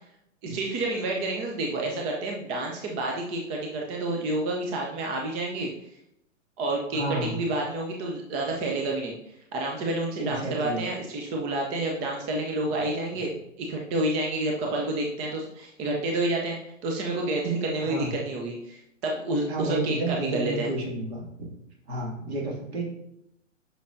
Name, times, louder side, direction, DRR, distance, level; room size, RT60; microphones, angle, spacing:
voice 1, 0.4-5.7 6.6-13.3 13.6-20.7, right 2 dB, 15° right, 0 dB, 0.5 m, -29 dB
voice 2, 6.9-7.4 10.2-10.8 17.8-18.1 19.5-21.5 21.9-22.8, right 1 dB, 55° right, -1 dB, 2.3 m, -31 dB
8.0 x 5.7 x 2.6 m, 0.79 s
figure-of-eight pair, 115°, 39 cm